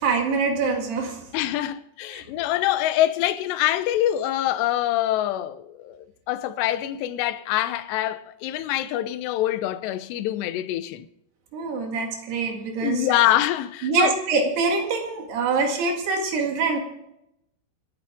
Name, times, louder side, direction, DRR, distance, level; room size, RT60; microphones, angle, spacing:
voice 1, 0.0-1.2 11.5-13.1 13.8-16.8, right 4 dB, 65° right, 3.9 m, -24 dB
voice 2, 1.3-11.1 12.8-14.1, left 13 dB, 75° left, 2.7 m, -25 dB
27.5 x 9.6 x 3.7 m
omnidirectional pair, 5.5 m